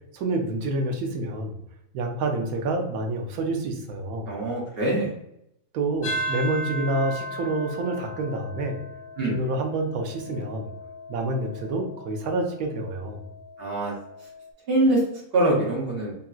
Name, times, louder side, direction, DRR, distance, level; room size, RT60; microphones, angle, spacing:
voice 1, 0.1-1.5 1.9-4.3 5.7-8.8 9.3-10.7 11.1-13.2, right 2 dB, 75° right, 3 dB, 1.0 m, -28 dB
voice 2, 4.3-5.1 9.2-9.3 13.6-13.9 14.7-15.0 15.3-16.1, right 1 dB, 50° right, -3 dB, 0.8 m, -23 dB
sound 1, 6.0-14.5, equal, 70° left, 0.7 m, -37 dB
2.9 x 2.7 x 2.3 m, 0.77 s
omnidirectional pair, 1.6 m